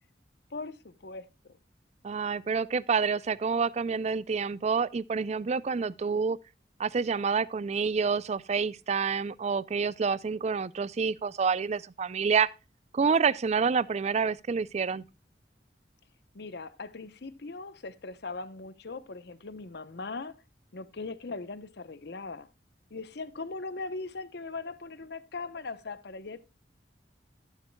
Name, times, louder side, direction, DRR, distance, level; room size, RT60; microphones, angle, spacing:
voice 1, 0.5-1.6 16.3-20.4 20.7-22.5 22.9-26.4, left 3 dB, 65° left, 0.8 m, -40 dB
voice 2, 2.0-6.4 6.8-12.5 12.9-15.0, right 5 dB, 40° right, 0.4 m, -28 dB
12.0 x 11.0 x 2.2 m
head